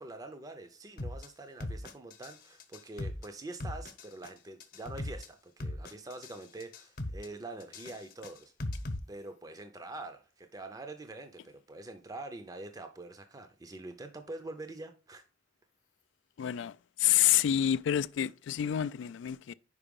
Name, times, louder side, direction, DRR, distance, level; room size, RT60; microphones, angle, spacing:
voice 1, 0.0-8.5 9.1-15.2, right 2 dB, 20° right, 0.5 m, -45 dB
sound 1, 1.0-1.3 1.6-2.3 2.6-3.3 3.6-4.3 4.6-5.3 5.6-6.3 6.6-7.3 7.6-9.0, left 1 dB, 55° left, 0.9 m, -38 dB
voice 2, 16.4-19.5, left 11 dB, 75° left, 0.3 m, -28 dB
5.4 x 4.9 x 5.2 m
head